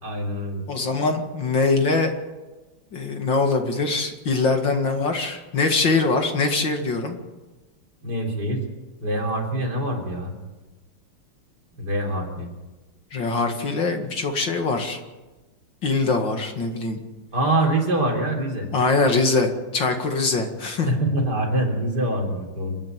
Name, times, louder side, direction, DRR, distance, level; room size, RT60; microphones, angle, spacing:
voice 1, 0.0-0.6 8.0-8.6 9.0-10.3 11.8-12.5 17.3-18.7 20.9-22.8, right 1 dB, 50° right, 0 dB, 4.3 m, -24 dB
voice 2, 0.7-2.1 2.9-7.2 13.1-15.0 15.8-17.0 18.7-20.9, left 3 dB, 60° left, 4 dB, 2.7 m, -23 dB
28.5 x 10.5 x 9.2 m, 1.2 s
omnidirectional pair, 2.4 m